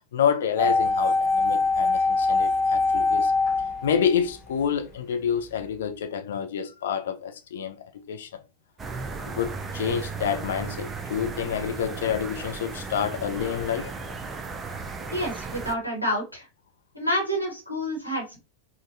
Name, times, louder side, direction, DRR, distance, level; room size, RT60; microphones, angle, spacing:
voice 1, 0.1-3.3 3.8-8.3 9.3-14.1, left 8 dB, 60° left, 0.4 m, -28 dB
sound 1, 0.6-4.7 4.9-5.0, left 3 dB, 15° left, 0.8 m, -23 dB
sound 2, 8.8-15.7, right 4 dB, 20° right, 0.4 m, -35 dB
voice 2, 15.1-16.5 16.9-18.4, equal, 90° left, 1.0 m, -28 dB
3.7 x 2.1 x 2.5 m
figure-of-eight pair, 90°, 0 cm